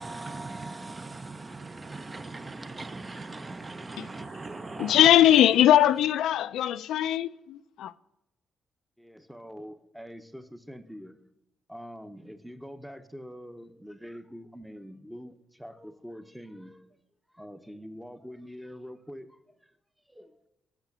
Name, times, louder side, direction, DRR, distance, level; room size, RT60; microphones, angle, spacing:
voice 1, 0.0-5.0, right 3 dB, 25° right, 0.6 m, -39 dB
voice 2, 4.8-7.9, left 12 dB, 80° left, 0.3 m, -21 dB
voice 3, 9.0-11.2 11.7-16.9 17.3-19.7 20.1-20.4, equal, ahead, 0.8 m, -45 dB
8.1 x 5.9 x 6.0 m
cardioid pair, 90°, 0 cm